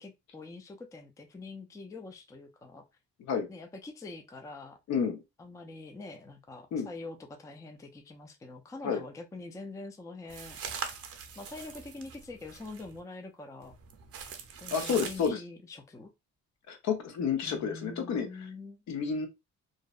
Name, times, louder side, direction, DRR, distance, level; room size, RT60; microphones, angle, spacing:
voice 1, 0.0-2.8 3.5-4.8 5.4-10.6 11.4-13.7 14.6-16.1 17.4-18.8, left 3 dB, 10° left, 0.3 m, -45 dB
voice 2, 4.9-5.2 6.7-6.9 8.8-9.0 14.7-15.4 16.7-18.5 18.9-19.3, left 6 dB, 65° left, 0.7 m, -30 dB
sound 1, 10.3-13.0 13.6-15.3, right 7 dB, 50° right, 0.6 m, -42 dB
2.6 x 2.1 x 2.3 m
cardioid pair, 90°, 30 cm